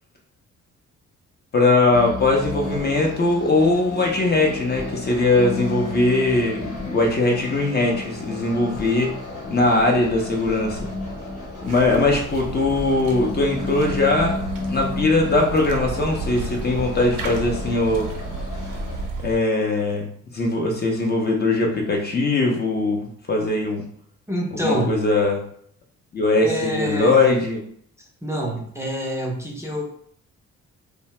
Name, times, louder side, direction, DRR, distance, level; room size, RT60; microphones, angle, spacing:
voice 1, 1.5-9.1 9.5-10.8 11.6-14.4 14.7-18.1 19.2-23.8 24.6-25.4 26.1-27.6, left 2 dB, 35° left, 1 dB, 0.6 m, -20 dB
sound 1, 1.9-19.1, left 2 dB, 90° left, 1.3 m, -33 dB
sound 2, 11.6-19.4, right 3 dB, 90° right, 0.6 m, -33 dB
voice 2, 24.3-25.0 26.4-27.2 28.2-29.8, equal, 10° right, -2 dB, 0.5 m, -26 dB
2.7 x 2.0 x 3.1 m, 0.63 s
cardioid pair, 90°, 30 cm